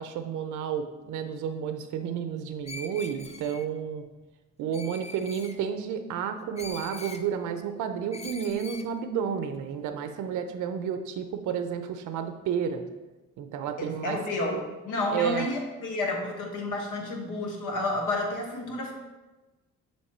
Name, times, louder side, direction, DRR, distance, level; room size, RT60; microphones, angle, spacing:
voice 1, 0.0-4.0 4.6-12.8 13.4-14.2 14.5-14.7 15.1-15.5, right 7 dB, 85° right, 8 dB, 0.5 m, -31 dB
Screech, 2.6-3.7 4.7-5.6 6.6-7.2 8.1-8.9, left 3 dB, 20° left, 0.4 m, -42 dB
voice 2, 13.8-14.6 14.8-18.9, left 2 dB, 85° left, 1 dB, 1.3 m, -30 dB
7.1 x 3.2 x 4.2 m, 1.1 s
cardioid pair, 90°, 30 cm